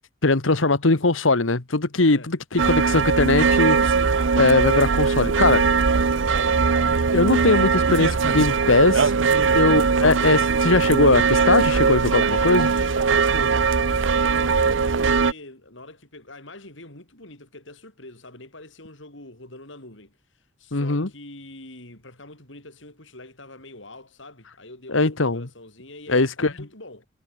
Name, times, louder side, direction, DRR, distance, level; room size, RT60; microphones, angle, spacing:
voice 1, 0.2-3.8 4.4-5.6 7.1-9.1 9.5-12.7 20.7-21.1 24.9-25.5 26.1-26.5, left 3 dB, 90° left, 1.5 m, -20 dB
voice 2, 2.0-2.4 5.4-7.0 9.3-9.7 12.3-27.1, left 2 dB, 70° left, 7.5 m, -44 dB
sound 1, 2.6-15.3, right 5 dB, 70° right, 0.7 m, -20 dB
head